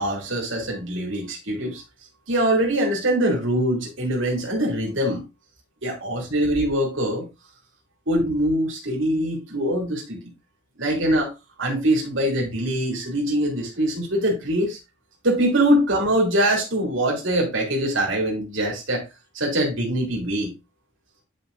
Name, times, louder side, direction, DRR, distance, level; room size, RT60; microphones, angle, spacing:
voice 1, 0.0-1.8 2.3-5.2 5.8-7.2 8.1-10.2 10.8-11.3 11.6-14.8 15.2-19.0 19.3-20.5, right 1 dB, 70° right, 2.7 m, -23 dB
9.4 x 5.3 x 2.5 m
head